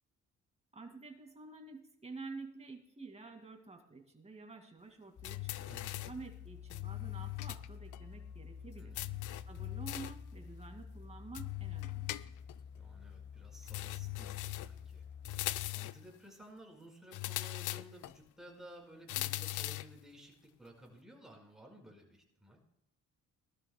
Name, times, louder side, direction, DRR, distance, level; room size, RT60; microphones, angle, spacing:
voice 1, 0.7-5.7 6.1-9.0 9.5-12.1, right 3 dB, 20° right, 4 dB, 2.3 m, -50 dB
sound 1, 5.2-6.2 6.7-7.7 7.9-8.0 9.0-10.2 11.4-12.6 13.7-14.8 15.3-16.1 17.1-18.2 19.1-20.0, left 17 dB, 80° left, 0.5 m, -40 dB
sound 2, 5.2-15.7, left 6 dB, 35° left, 0.8 m, -50 dB
voice 2, 5.7-6.0 8.8-9.4 12.7-15.0 15.7-22.6, equal, ahead, -1 dB, 5.0 m, -55 dB
21.0 x 12.5 x 2.3 m, 0.78 s
cardioid pair, 90°, 30 cm